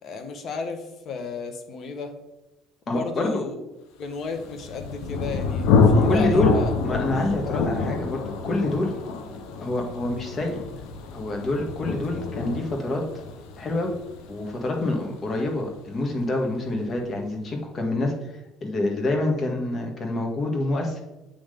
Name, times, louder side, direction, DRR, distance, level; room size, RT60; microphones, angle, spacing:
voice 1, 0.0-2.1 2.9-3.7 4.0-6.7 9.0-9.1, left 4 dB, 55° left, 7 dB, 1.3 m, -33 dB
voice 2, 2.9-3.4 6.1-6.5 6.8-8.9 9.6-10.6 11.1-13.0 13.6-14.0 14.3-21.0, left 2 dB, 35° left, 2 dB, 1.8 m, -27 dB
Thunder, 4.3-15.9, left 4 dB, 80° left, 0.9 m, -26 dB
8.5 x 3.9 x 5.3 m, 1.0 s
supercardioid pair, 100°, 0 cm